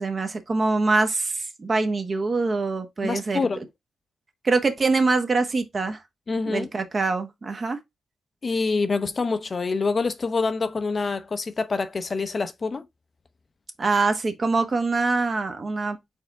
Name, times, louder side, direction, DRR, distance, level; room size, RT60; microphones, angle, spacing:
voice 1, 0.0-3.5 4.4-6.0 6.5-7.8 13.8-16.0, right 3 dB, 40° right, 1.0 m, -24 dB
voice 2, 3.0-3.6 6.3-6.7 8.4-12.8, left 4 dB, 35° left, 0.5 m, -26 dB
4.2 x 3.5 x 3.6 m
cardioid pair, 95°, 0 cm